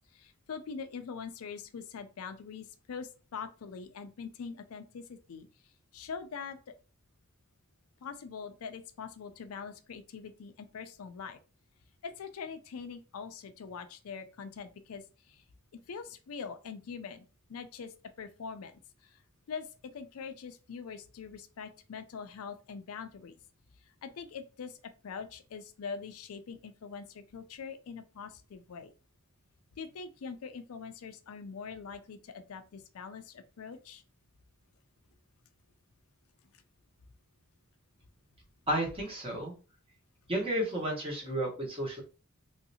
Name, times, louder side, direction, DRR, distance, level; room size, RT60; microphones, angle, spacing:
voice 1, 0.1-5.5 5.9-6.6 8.0-11.4 12.0-15.4 15.7-19.2 19.5-23.4 24.0-28.9 29.8-34.0, left 6 dB, 85° left, 0.4 m, -43 dB
voice 2, 38.7-39.5 40.3-42.0, right 1 dB, 25° right, 1.1 m, -32 dB
3.1 x 2.7 x 2.7 m
head